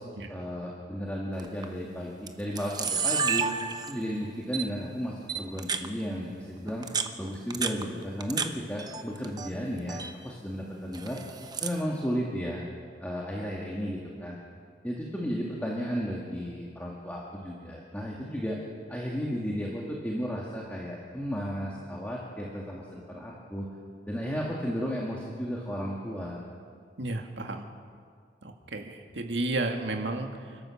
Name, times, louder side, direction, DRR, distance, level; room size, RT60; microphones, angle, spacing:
voice 1, 0.3-3.5 3.9-6.9 7.2-11.2 11.6-12.6 13.0-14.4 14.8-18.6 18.9-23.7 24.1-26.4, equal, 10° left, -3 dB, 2.0 m, -34 dB
Camera, 1.4-1.7 2.3-2.4 2.6-4.1 4.5-4.7 5.3-5.9 6.7-8.5 8.8-9.5 9.8-10.1 10.9-11.8, right 5 dB, 20° right, 0.9 m, -31 dB
voice 2, 27.0-27.7 28.4-30.7, right 2 dB, 75° right, 3 dB, 2.0 m, -33 dB
29.5 x 12.5 x 7.2 m, 2.1 s
head